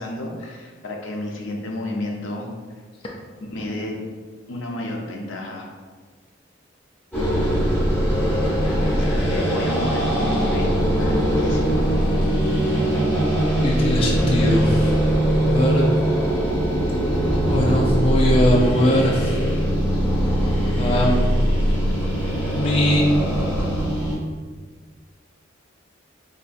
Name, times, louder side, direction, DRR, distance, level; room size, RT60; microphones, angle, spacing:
voice 1, 0.0-2.5 3.4-4.0 4.5-5.7 8.7-11.9, left 1 dB, 80° left, 0 dB, 0.5 m, -31 dB
sound 1, 7.1-24.2, right 1 dB, 10° left, 1.2 m, -21 dB
voice 2, 13.6-14.8 15.4-15.9 17.4-19.3 20.8-21.1 22.6-23.0, left 1 dB, 30° left, -2 dB, 0.3 m, -20 dB
3.9 x 2.3 x 2.5 m, 1.5 s
head